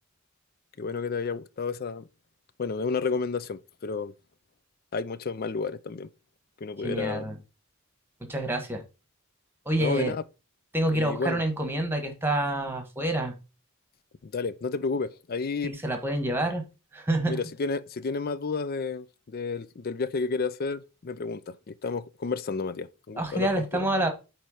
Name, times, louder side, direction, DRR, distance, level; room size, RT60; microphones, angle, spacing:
voice 1, 0.8-2.1 2.6-4.1 4.9-6.1 6.6-7.3 9.8-10.2 10.9-11.4 14.2-15.7 17.3-23.9, left 4 dB, 45° left, 0.4 m, -31 dB
voice 2, 6.8-7.4 8.3-8.8 9.6-10.1 10.7-13.3 15.6-16.6 16.9-17.4 23.2-24.1, right 1 dB, 10° right, 1.3 m, -27 dB
8.7 x 3.2 x 4.9 m
head